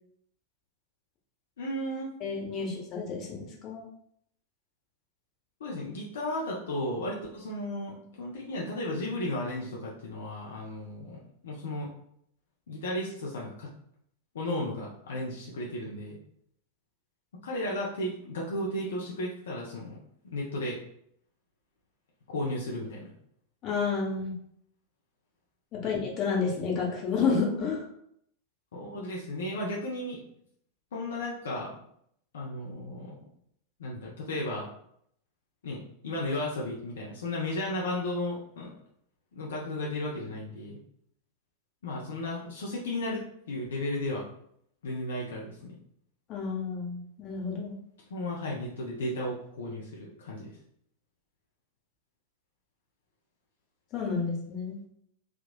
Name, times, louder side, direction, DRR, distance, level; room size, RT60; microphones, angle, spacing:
voice 1, 1.6-2.1 5.6-11.9 12.7-13.7 14.3-16.2 17.4-20.0 20.3-20.8 22.3-23.1 25.7-25.9 28.7-30.2 30.9-31.7 32.3-33.2 33.8-34.7 35.6-38.7 39.3-40.8 41.8-44.3 44.8-45.7 48.1-50.5, left 1 dB, 65° left, -4 dB, 0.5 m, -34 dB
voice 2, 2.2-3.8 23.6-24.3 25.7-27.9 46.3-47.8 53.9-54.8, left 5 dB, 35° left, -1 dB, 0.8 m, -30 dB
3.5 x 2.3 x 2.2 m, 0.69 s
figure-of-eight pair, 90°, 0 cm